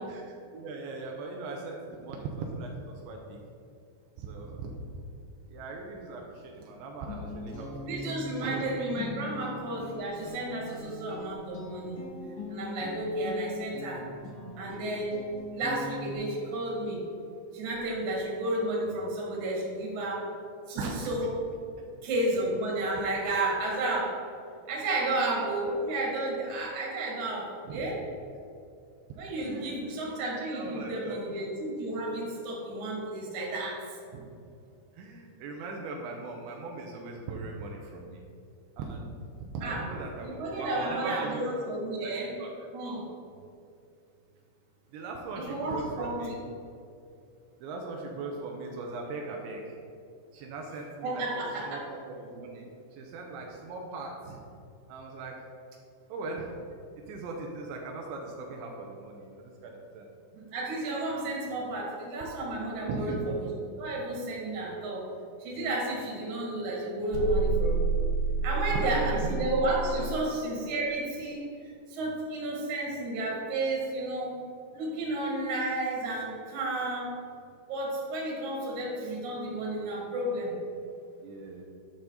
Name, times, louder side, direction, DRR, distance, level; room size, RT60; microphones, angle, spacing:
voice 1, 0.1-3.4 4.2-4.7 5.5-8.7 20.8-21.1 27.6-28.0 29.4-30.1 30.5-31.2 35.0-38.2 38.8-39.2 39.5-42.1 42.4-42.5 44.9-46.3 47.6-49.8 50.3-51.8 52.1-52.7 52.9-54.4 54.9-55.4 56.1-56.5 57.1-60.1 62.9-63.2 68.5-69.4 69.9-70.1 81.2-81.6, right 3 dB, 85° right, 0 dB, 3.1 m, -39 dB
Guitar, 7.1-16.1, left 2 dB, 70° left, 1.3 m, -41 dB
voice 2, 7.9-12.0 12.5-14.0 14.6-15.2 15.5-17.0 17.5-20.3 20.7-20.8 21.1-21.3 22.0-24.2 24.7-28.0 29.2-33.8 39.6-39.9 40.2-42.3 42.7-43.0 45.4-46.3 51.0-51.8 60.3-63.1 63.8-65.1 65.4-67.9 68.4-71.5 71.9-74.4 74.7-77.2 77.7-80.6, right 2 dB, 50° right, -3 dB, 3.1 m, -32 dB
sound 1, 67.1-70.2, right 4 dB, 65° right, 2.8 m, -29 dB
11.5 x 7.4 x 4.0 m, 2.5 s
omnidirectional pair, 5.3 m